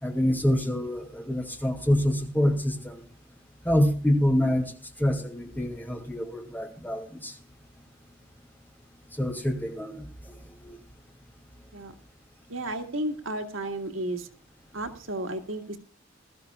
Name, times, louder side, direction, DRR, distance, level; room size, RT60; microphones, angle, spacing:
voice 1, 0.0-3.0 3.6-4.7 5.0-7.3 9.2-10.0 10.6-10.7, left 1 dB, 10° left, 2 dB, 2.5 m, -26 dB
voice 2, 12.5-14.3 14.7-15.8, right 1 dB, 85° right, 5 dB, 1.8 m, -33 dB
21.0 x 13.0 x 2.3 m, 0.37 s
head